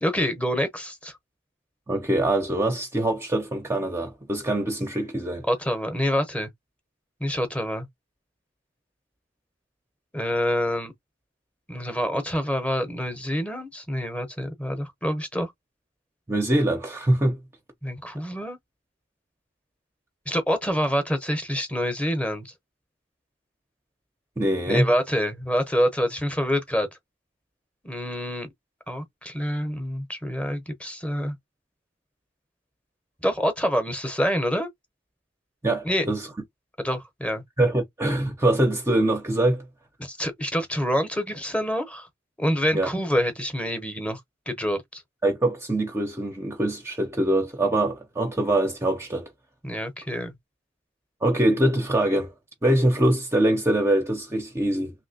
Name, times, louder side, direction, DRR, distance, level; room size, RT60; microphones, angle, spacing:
voice 1, 0.0-1.1 5.5-6.5 7.2-7.9 10.1-10.9 11.7-15.5 17.8-18.6 20.3-22.5 24.7-26.9 27.8-28.5 28.9-31.4 33.2-34.7 35.8-36.1 36.8-37.4 40.0-42.1 42.4-44.2 44.5-45.0 49.6-50.3, equal, 5° left, 0.8 m, -26 dB
voice 2, 1.9-5.4 16.3-17.4 24.4-24.9 35.6-36.3 37.6-39.6 42.7-42.9 45.2-49.3 51.2-52.3 52.6-54.9, right 1 dB, 15° right, 0.6 m, -23 dB
3.1 x 2.9 x 2.7 m
head